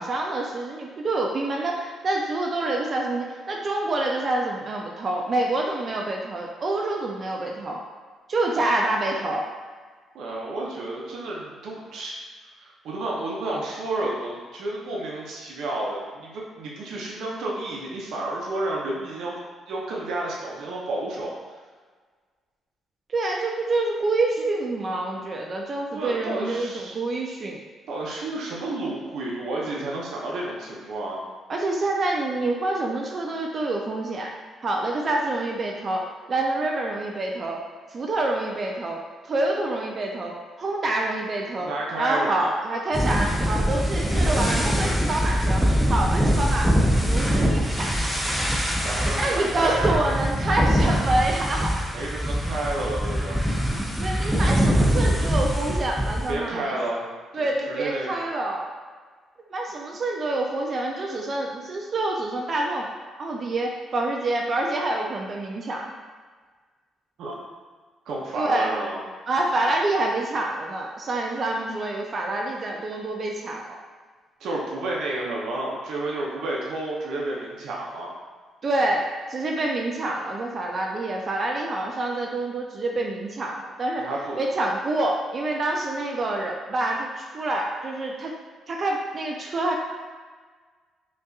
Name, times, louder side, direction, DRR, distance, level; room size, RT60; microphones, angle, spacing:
voice 1, 0.0-7.8 8.3-9.5 23.1-27.6 31.5-34.3 34.6-37.6 37.9-46.7 47.0-47.9 49.2-51.7 54.0-56.8 57.3-58.7 59.5-62.9 63.2-65.9 68.3-68.7 69.3-73.8 78.6-84.1 84.3-88.3 88.7-89.8, right 2 dB, 45° right, 0 dB, 0.4 m, -27 dB
voice 2, 10.1-12.2 12.6-19.3 19.7-21.3 25.9-27.0 27.9-31.2 41.6-42.5 44.2-44.3 48.8-50.0 51.9-53.4 56.3-57.1 57.4-58.1 67.2-67.4 68.1-69.0 74.4-78.1 84.0-84.4, right 2 dB, 75° right, -4 dB, 0.7 m, -31 dB
sound 1, 42.9-56.3, equal, ahead, 0.6 m, -23 dB
5.3 x 2.5 x 2.4 m, 1.5 s
cardioid pair, 90°, 0 cm